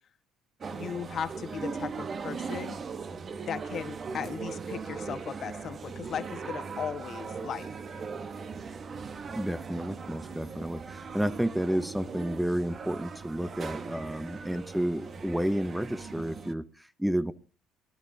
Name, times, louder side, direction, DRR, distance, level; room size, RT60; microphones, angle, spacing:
sound 1, 0.6-16.5, right 5 dB, 40° right, 1.0 m, -39 dB
voice 1, 0.7-2.8 3.5-7.7, left 8 dB, 50° left, 8 dB, 1.3 m, -37 dB
voice 2, 9.3-17.3, equal, 5° right, 12 dB, 0.6 m, -31 dB
20.5 x 11.0 x 2.7 m, 0.34 s
supercardioid pair, 85°, 0 cm